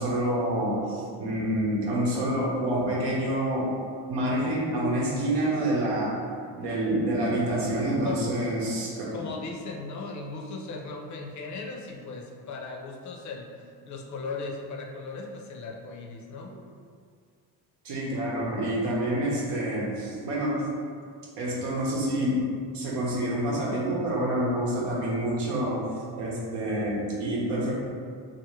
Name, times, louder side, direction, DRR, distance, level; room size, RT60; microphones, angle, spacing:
voice 1, 0.0-3.7 4.1-6.2 6.6-9.3 17.8-20.7 21.4-22.5 22.7-25.8 26.2-27.7, right 1 dB, 90° right, -5 dB, 0.9 m, -27 dB
voice 2, 9.1-13.5 13.9-16.5, left 3 dB, 45° left, 1 dB, 0.5 m, -37 dB
2.5 x 2.4 x 3.0 m, 2.1 s
cardioid pair, 100°, 41 cm